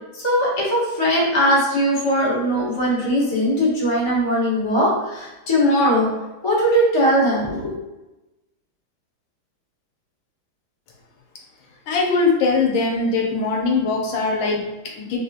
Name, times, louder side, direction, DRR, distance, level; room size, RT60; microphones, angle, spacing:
voice 1, 0.1-6.1 6.4-7.7, equal, 45° left, -6 dB, 0.3 m, -20 dB
voice 2, 11.9-15.2, left 4 dB, 80° left, 0 dB, 1.4 m, -21 dB
3.5 x 2.6 x 2.4 m, 1.1 s
omnidirectional pair, 2.2 m